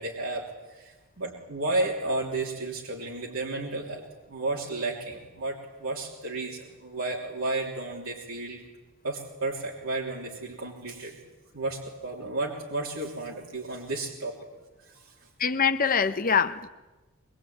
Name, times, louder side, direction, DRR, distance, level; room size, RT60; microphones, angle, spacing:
voice 1, 0.0-8.6 9.0-11.2 11.5-14.4 14.9-15.1, right 2 dB, 75° right, -3 dB, 3.4 m, -32 dB
voice 2, 15.4-16.7, left 6 dB, 40° left, 11 dB, 0.8 m, -24 dB
23.5 x 22.5 x 9.0 m, 1.2 s
head